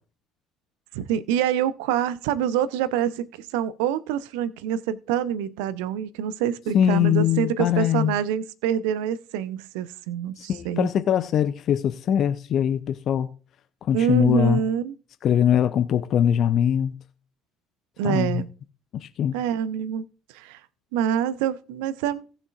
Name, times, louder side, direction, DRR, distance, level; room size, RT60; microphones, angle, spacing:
voice 1, 0.9-10.9 13.9-15.0 18.0-18.5 19.3-20.0 20.3-20.6 20.9-22.2, right 9 dB, 65° right, 0.6 m, -26 dB
voice 2, 6.7-8.1 10.4-13.3 13.8-14.6 15.2-16.9 18.0-18.4 18.9-19.4, left 9 dB, 50° left, 0.6 m, -22 dB
18.0 x 6.6 x 2.4 m
figure-of-eight pair, 55°, 0 cm